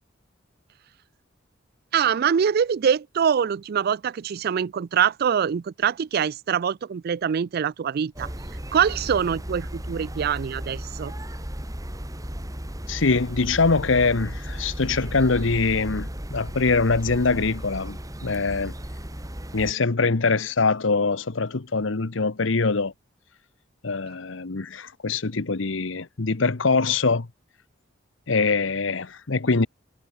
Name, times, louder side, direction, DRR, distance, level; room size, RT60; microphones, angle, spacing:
voice 1, 1.9-8.3 8.7-11.1, right 7 dB, 50° right, 0.3 m, -24 dB
sound 1, 8.2-19.7, equal, 15° right, 2.5 m, -35 dB
voice 2, 12.9-18.7 19.5-22.9 23.8-27.3 28.3-29.7, left 4 dB, 70° left, 1.0 m, -23 dB
head